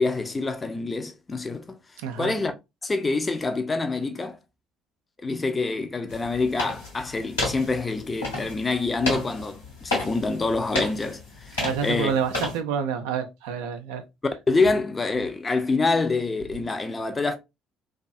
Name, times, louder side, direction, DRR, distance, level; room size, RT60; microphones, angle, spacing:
voice 1, 0.0-1.8 2.2-2.5 2.8-4.4 5.2-11.2 11.5-12.1 14.5-17.4, left 3 dB, 25° left, 0.5 m, -26 dB
voice 2, 2.0-2.3 11.5-14.0, right 7 dB, 70° right, 0.3 m, -28 dB
sound 1, 6.1-12.6, left 2 dB, 80° left, 1.2 m, -32 dB
2.5 x 2.3 x 2.4 m
figure-of-eight pair, 50°, 0 cm